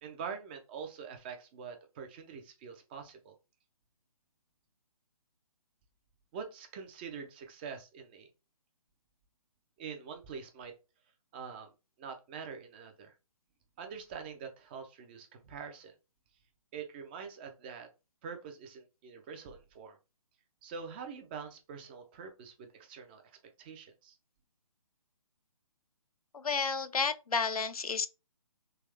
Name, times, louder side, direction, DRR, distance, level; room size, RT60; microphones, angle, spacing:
voice 1, 0.0-3.4 6.3-8.3 9.8-10.7 11.3-11.7 12.0-13.1 13.8-15.9 16.7-17.9 18.2-20.0 20.6-23.2 23.6-24.2, right 6 dB, 15° right, 0.4 m, -45 dB
voice 2, 26.3-28.1, left 5 dB, 80° left, 0.5 m, -31 dB
3.5 x 3.0 x 3.3 m
figure-of-eight pair, 140°, 19 cm